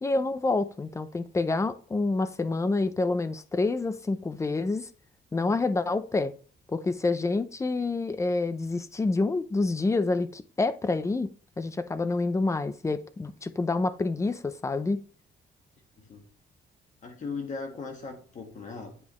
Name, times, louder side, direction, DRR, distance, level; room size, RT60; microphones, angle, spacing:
voice 1, 0.0-4.9 5.3-6.3 6.7-11.3 11.6-15.0, left 3 dB, 15° left, 0.6 m, -27 dB
voice 2, 17.0-19.0, left 4 dB, 45° left, 1.6 m, -38 dB
9.6 x 5.5 x 3.1 m
cardioid pair, 145°, 17 cm